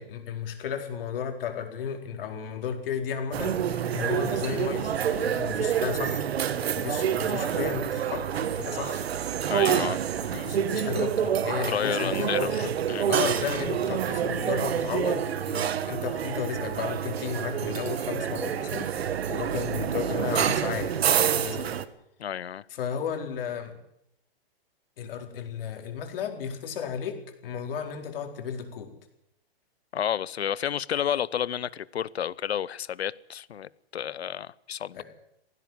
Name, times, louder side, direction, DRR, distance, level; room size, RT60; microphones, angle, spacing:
voice 1, 0.0-9.0 10.3-12.7 13.1-21.7 22.7-23.8 25.0-28.9 34.9-35.0, left 7 dB, 60° left, 4 dB, 4.4 m, -34 dB
sound 1, 3.3-21.8, right 9 dB, 75° right, 1.7 m, -28 dB
voice 2, 9.5-10.0 11.6-13.0 22.2-22.6 29.9-35.0, left 9 dB, 90° left, 21 dB, 0.9 m, -31 dB
17.0 x 16.0 x 9.4 m, 0.78 s
hypercardioid pair, 140°, 31 cm